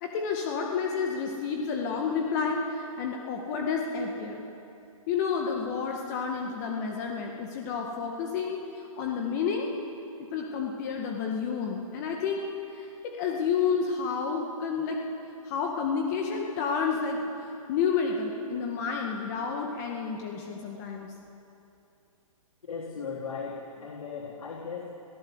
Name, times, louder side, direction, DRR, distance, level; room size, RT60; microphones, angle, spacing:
voice 1, 0.0-4.5 5.1-9.7 10.2-12.9 13.2-15.0 15.4-17.3 17.7-21.1, left 5 dB, 30° left, 1 dB, 2.0 m, -30 dB
voice 2, 22.7-24.9, left 5 dB, 75° left, -1 dB, 3.8 m, -37 dB
26.5 x 17.5 x 8.0 m, 2.8 s
hypercardioid pair, 160°, 18 cm